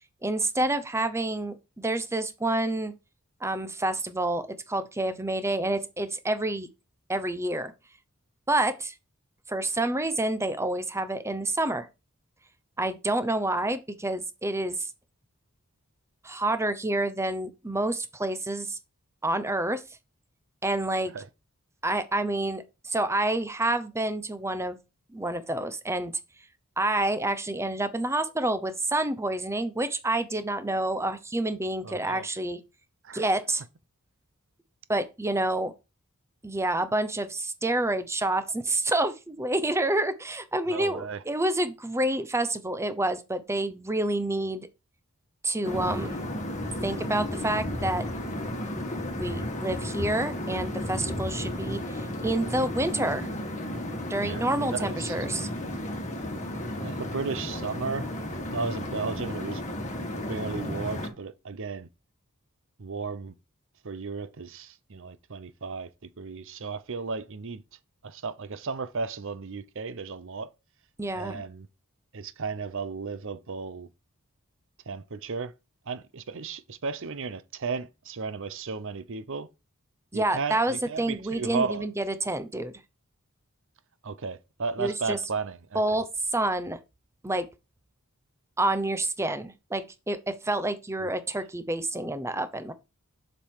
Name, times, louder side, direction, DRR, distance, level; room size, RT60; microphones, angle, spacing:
voice 1, 0.2-2.9 3.4-4.4 4.7-6.7 7.1-7.7 8.5-8.9 9.5-11.9 12.8-14.9 16.2-18.8 19.2-19.8 20.6-21.1 21.8-24.8 25.1-26.1 26.8-32.6 33.1-33.6 34.9-35.7 36.4-44.7 45.4-46.2 46.8-48.0 49.2-53.3 54.1-55.5 71.0-71.4 80.1-82.7 84.8-85.2 85.7-86.0 86.3-86.8 87.2-87.5 88.6-92.7, right 1 dB, 10° right, 0.8 m, -28 dB
voice 2, 31.8-32.3 33.0-33.2 40.7-41.2 54.2-55.2 56.8-58.1 58.5-59.6 60.3-61.9 62.8-63.3 63.8-65.9 66.2-67.6 68.0-70.5 71.1-71.7 72.1-73.9 74.9-75.5 75.9-79.5 80.1-81.9 84.0-86.0 91.0-91.1, right 4 dB, 60° right, 0.7 m, -34 dB
sound 1, 45.6-61.1, left 1 dB, 35° left, 1.8 m, -33 dB
7.2 x 5.4 x 4.8 m
head